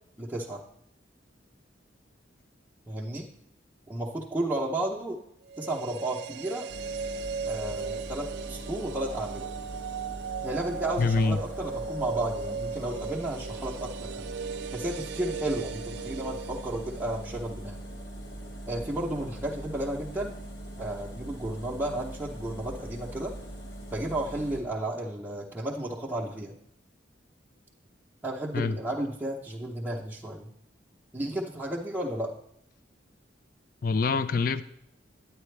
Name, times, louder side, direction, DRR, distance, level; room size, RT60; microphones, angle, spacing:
voice 1, 0.2-0.6 2.9-3.3 3.9-5.2 5.6-6.7 7.4-9.5 10.4-14.3 14.7-17.8 18.7-20.3 20.8-23.4 23.9-26.6 28.2-30.5 31.1-32.3, right 1 dB, 10° right, -5 dB, 0.8 m, -33 dB
sound 1, 5.5-17.6 17.9-18.0, right 5 dB, 65° right, 0.4 m, -37 dB
sound 2, 6.7-24.6, right 1 dB, 65° left, 1.6 m, -42 dB
voice 2, 11.0-11.4 28.5-28.8 33.8-34.6, left 4 dB, 50° left, 14 dB, 0.4 m, -25 dB
9.7 x 9.2 x 3.3 m, 0.75 s
head